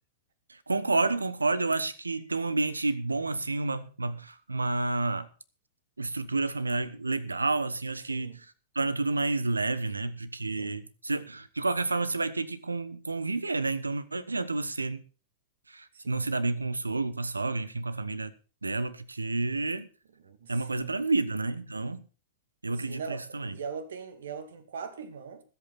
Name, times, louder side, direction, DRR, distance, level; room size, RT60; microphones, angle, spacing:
voice 1, 0.5-5.3 6.0-8.5 8.7-15.0 15.7-18.3 18.6-19.9 20.5-22.0 22.6-23.5, right 3 dB, 85° right, 1.0 m, -30 dB
voice 2, 20.2-20.9 22.8-25.4, right 6 dB, 65° right, 2.1 m, -40 dB
20.5 x 8.3 x 4.2 m
figure-of-eight pair, 95°, 0 cm